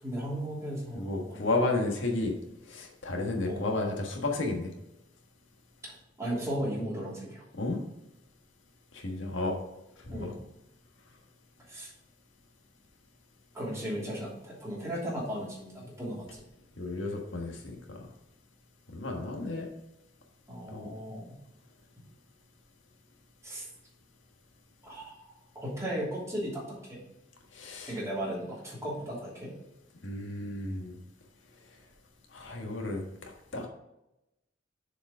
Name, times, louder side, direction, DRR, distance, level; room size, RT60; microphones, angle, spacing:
voice 1, 0.0-1.4 3.4-3.7 6.2-7.4 10.1-10.4 11.7-11.9 13.5-16.4 20.5-21.4 23.4-23.7 24.8-27.0 27.9-29.5, equal, 15° right, -6 dB, 3.1 m, -36 dB
voice 2, 0.9-2.3 2.7-4.7 7.6-7.8 8.9-9.6 10.0-10.3 16.8-18.0 18.9-19.7 20.7-20.9 27.5-28.0 30.0-31.0 32.3-33.7, left 2 dB, 80° left, 1 dB, 1.5 m, -32 dB
7.0 x 4.9 x 4.9 m, 0.91 s
head